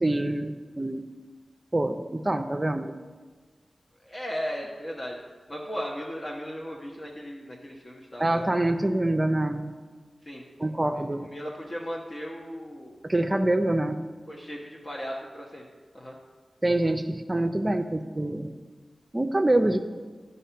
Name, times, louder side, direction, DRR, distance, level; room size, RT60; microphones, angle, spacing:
voice 1, 0.0-1.1 1.7-2.9 8.2-9.7 10.6-11.3 13.0-14.0 16.6-18.5 19.1-19.8, right 1 dB, 25° right, 7 dB, 0.5 m, -25 dB
voice 2, 4.0-5.2 5.5-8.5 10.2-10.4 10.8-11.0 11.3-13.0 14.3-15.6 15.9-16.1, equal, 40° left, -3 dB, 1.0 m, -36 dB
9.8 x 5.5 x 5.7 m, 1.4 s
wide cardioid pair, 65°, 0 cm